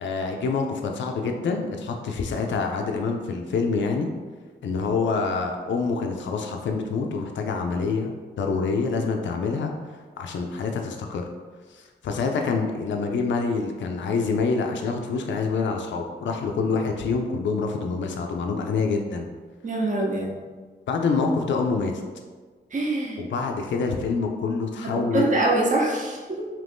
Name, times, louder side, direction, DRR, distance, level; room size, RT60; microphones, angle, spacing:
voice 1, 0.0-4.1 4.6-8.1 8.4-9.7 10.2-11.2 11.7-19.3 20.9-21.9 23.2-25.4, left 4 dB, 80° left, 3 dB, 0.4 m, -26 dB
voice 2, 19.6-20.3 22.7-23.2 24.8-26.5, right 2 dB, 45° right, -2 dB, 0.6 m, -24 dB
2.9 x 2.6 x 3.4 m, 1.4 s
cardioid pair, 75°, 19 cm